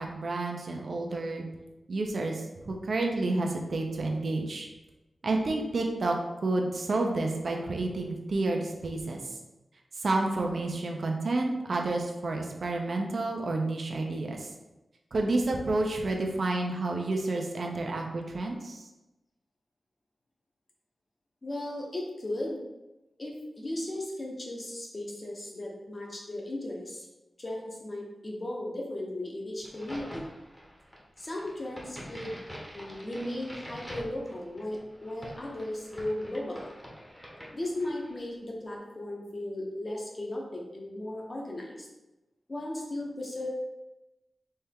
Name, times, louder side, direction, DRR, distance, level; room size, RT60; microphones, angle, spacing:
voice 1, 0.0-1.4 1.9-4.7 5.2-9.3 10.0-14.5 15.1-18.9, right 2 dB, 65° right, 1 dB, 0.6 m, -30 dB
voice 2, 21.4-22.6 23.2-27.1 27.4-30.3 31.2-32.4 32.7-36.7 37.5-41.9 42.5-43.5, left 1 dB, 35° left, -2 dB, 1.0 m, -36 dB
Crack, 29.6-38.2, equal, 10° left, 1.0 m, -46 dB
4.4 x 3.3 x 3.6 m, 1.0 s
wide cardioid pair, 115°, 0 cm